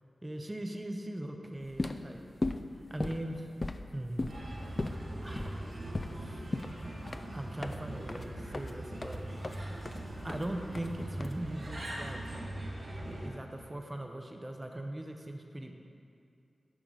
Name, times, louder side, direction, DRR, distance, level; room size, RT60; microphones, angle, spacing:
voice 1, 0.2-2.2 2.9-3.5 3.9-4.7 5.2-5.7 6.1-6.5 7.3-9.2 10.2-12.2 12.9-15.8, right 1 dB, 20° right, 3 dB, 0.7 m, -40 dB
sound 1, 1.6-11.8, left 2 dB, 35° left, 0.3 m, -39 dB
Bird, 4.3-13.3, right 1 dB, 65° right, 2.0 m, -41 dB
11.0 x 3.8 x 4.9 m, 2.5 s
wide cardioid pair, 70°, 0 cm